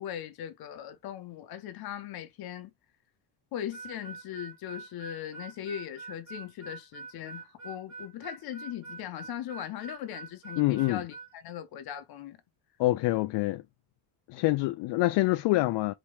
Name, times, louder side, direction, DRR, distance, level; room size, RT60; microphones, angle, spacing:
voice 1, 0.0-2.7 3.5-12.4, left 10 dB, 55° left, 1.0 m, -39 dB
Harmonica, 3.7-11.3, right 4 dB, 40° right, 1.3 m, -45 dB
voice 2, 10.6-11.0 12.8-13.6 14.3-15.9, left 18 dB, 70° left, 0.5 m, -26 dB
4.3 x 3.0 x 3.4 m
cardioid pair, 165°, 44 cm